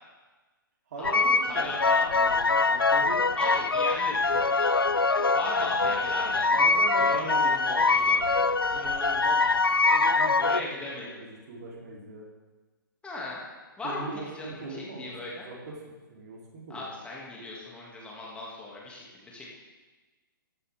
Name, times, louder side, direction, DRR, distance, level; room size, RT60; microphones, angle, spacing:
voice 1, 0.9-1.9 2.1-3.4 6.5-8.5 9.9-12.3 13.8-15.8 16.1-16.8, right 2 dB, 50° right, -2 dB, 3.4 m, -40 dB
sound 1, 1.0-10.6, left 3 dB, 90° left, 0.5 m, -24 dB
voice 2, 1.4-2.2 3.4-4.9 5.2-6.5 7.0-8.2 8.7-10.0 10.4-11.1 13.0-13.4 13.8-15.5 16.7-19.5, left 2 dB, 10° left, -4 dB, 2.4 m, -38 dB
14.0 x 12.5 x 3.6 m, 1.3 s
figure-of-eight pair, 125°, 12 cm